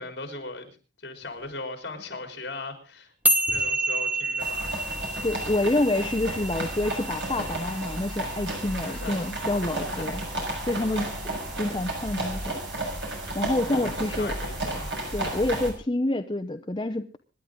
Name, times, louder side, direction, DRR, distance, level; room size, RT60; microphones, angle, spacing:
voice 1, 0.0-3.1 3.5-4.8 8.7-9.2 9.7-10.3 10.9-11.0 13.7-14.9 15.2-15.5, left 2 dB, 60° left, 6 dB, 4.2 m, -39 dB
sound 1, 1.2-6.3, right 1 dB, 30° right, 5.5 m, -51 dB
sound 2, 3.3-9.8, right 1 dB, 10° right, 1.3 m, -29 dB
sound 3, 4.4-15.7, right 1 dB, 70° right, 6.7 m, -33 dB
voice 2, 5.2-10.2 10.7-11.1 11.5-12.4 13.3-14.3 15.1-17.2, left 2 dB, 25° left, 6 dB, 0.7 m, -27 dB
26.0 x 11.0 x 3.8 m, 0.35 s
head